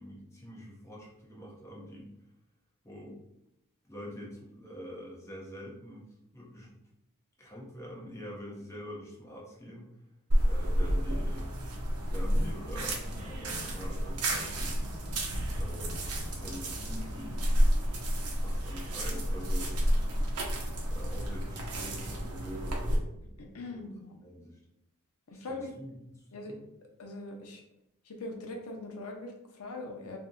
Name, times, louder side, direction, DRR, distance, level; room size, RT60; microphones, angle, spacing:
voice 1, 0.0-2.1 2.8-3.2 3.8-6.8 7.4-9.9 10.4-11.6 12.1-14.8 15.5-17.5 18.4-19.8 20.9-22.8 23.7-23.9 24.2-24.6 25.3-26.6, equal, 15° left, -4 dB, 0.6 m, -45 dB
leaves crunching, 10.3-23.0, equal, 85° right, 0.6 m, -30 dB
sound 1, 10.6-16.7, left 1 dB, 40° right, 0.7 m, -48 dB
voice 2, 23.4-24.2 25.3-25.7 26.3-26.5 27.0-27.6 28.0-30.2, left 2 dB, 75° left, 2 dB, 0.5 m, -41 dB
2.7 x 2.1 x 3.6 m, 0.82 s
head